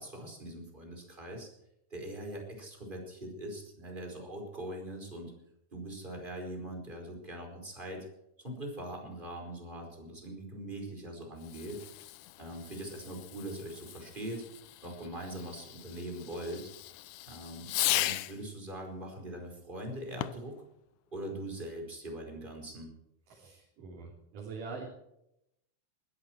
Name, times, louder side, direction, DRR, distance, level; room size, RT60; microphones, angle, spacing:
voice 1, 0.0-1.5 1.9-5.3 5.7-8.0 8.4-11.8 12.4-14.4 14.8-16.6 17.2-17.7 17.9-20.6 21.1-22.9, right 1 dB, 15° right, 2 dB, 4.7 m, -42 dB
Fireworks, 11.4-18.5 20.1-20.6, left 16 dB, 75° left, 2.0 m, -38 dB
voice 2, 23.3-24.9, right 4 dB, 80° right, -3 dB, 4.7 m, -44 dB
20.0 x 14.5 x 4.6 m, 0.81 s
omnidirectional pair, 3.8 m